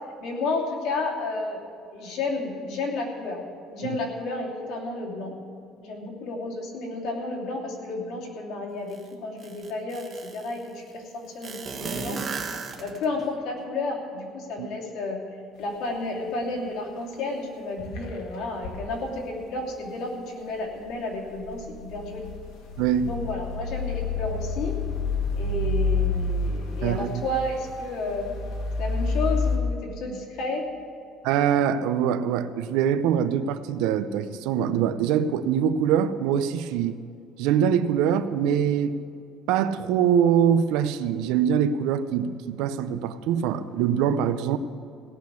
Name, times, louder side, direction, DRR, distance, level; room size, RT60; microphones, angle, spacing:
voice 1, 0.2-1.6 1.9-3.4 3.7-5.3 5.8-12.2 12.8-15.2 15.6-22.3 23.0-24.8 25.3-28.3 28.8-30.7, left 2 dB, 65° left, 2.9 m, -31 dB
sound 1, 8.9-9.0 9.4-10.5 11.4-13.2, right 5 dB, 25° right, 1.2 m, -34 dB
sound 2, 15.6-15.8 16.2-16.8 17.1-17.2 17.8-18.8 20.9-29.6, left 3 dB, 80° left, 2.1 m, -29 dB
voice 2, 22.8-23.1 26.8-27.2 31.2-37.0 37.4-39.0 39.5-44.6, right 8 dB, 80° right, 0.7 m, -23 dB
17.5 x 6.3 x 8.4 m
cardioid pair, 170°, 0 cm